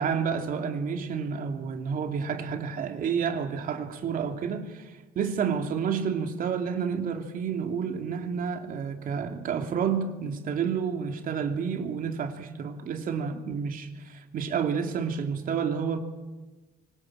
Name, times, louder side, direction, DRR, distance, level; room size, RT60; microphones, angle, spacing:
voice 1, 0.0-16.0, right 6 dB, 55° right, 2.8 m, -30 dB
24.5 x 21.0 x 8.9 m
cardioid pair, 110°, 17 cm